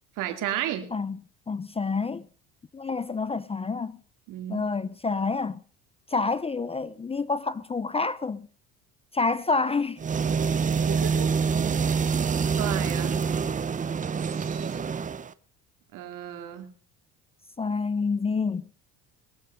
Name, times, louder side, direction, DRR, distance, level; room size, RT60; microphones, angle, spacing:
voice 1, 0.2-0.9 4.3-4.7 10.8-11.9 12.6-13.2 14.2-14.8 15.9-16.7, right 11 dB, 65° right, 2.4 m, -34 dB
voice 2, 1.5-2.3 2.7-4.0 4.5-5.6 6.1-8.5 9.1-10.0 10.5-10.6 17.6-18.7, left 4 dB, 15° left, 0.5 m, -28 dB
sound 1, 10.0-15.3, right 6 dB, 25° right, 0.7 m, -26 dB
21.5 x 7.5 x 5.2 m
supercardioid pair, 90°, 34 cm